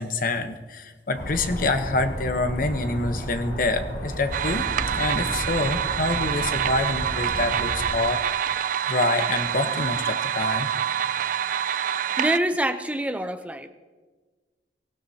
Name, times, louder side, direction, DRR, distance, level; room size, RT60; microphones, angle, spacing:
voice 1, 0.0-8.2 8.5-10.7, left 2 dB, 50° left, 8 dB, 1.0 m, -27 dB
sound 1, 1.1-7.9, equal, 70° left, 4.7 m, -33 dB
sound 2, 4.3-12.4, right 9 dB, 50° right, 0.3 m, -26 dB
voice 2, 12.2-13.7, right 1 dB, 10° right, 8 dB, 0.7 m, -25 dB
23.0 x 16.0 x 2.9 m, 1.3 s
head